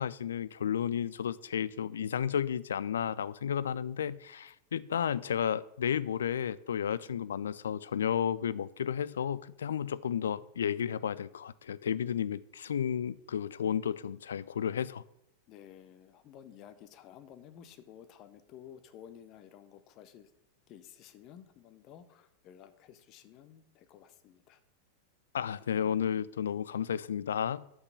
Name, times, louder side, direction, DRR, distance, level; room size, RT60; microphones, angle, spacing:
voice 1, 0.0-15.0 25.3-27.7, left 8 dB, 65° left, 18 dB, 0.3 m, -32 dB
voice 2, 15.5-20.3 20.7-24.6, left 9 dB, 35° left, 10 dB, 0.7 m, -53 dB
5.9 x 5.4 x 6.9 m, 0.80 s
figure-of-eight pair, 90°, 0 cm